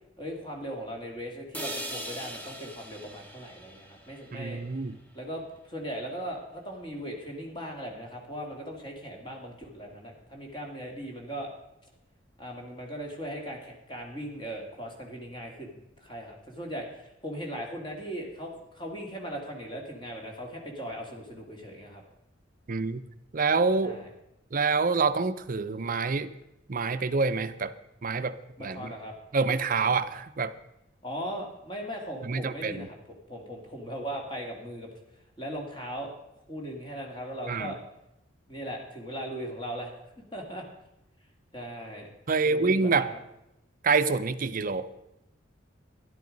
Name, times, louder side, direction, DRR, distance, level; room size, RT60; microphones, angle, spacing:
voice 1, 0.2-4.6 5.1-11.5 12.4-22.0 23.8-24.1 28.6-29.1 31.0-32.9 33.3-34.9 35.4-36.1 36.5-37.8 38.5-40.6 41.5-42.1 42.4-43.2, equal, 25° left, 1 dB, 2.4 m, -38 dB
sound 1, 1.5-5.6, right 1 dB, 10° left, 1.4 m, -41 dB
voice 2, 4.3-5.0 22.7-23.0 23.3-24.0 24.5-26.3 26.7-27.7 28.0-28.9 29.3-30.5 32.2-32.9 37.5-37.7 42.3-43.1 43.8-44.9, right 4 dB, 45° right, 12 dB, 0.6 m, -27 dB
12.5 x 11.0 x 5.3 m, 0.86 s
head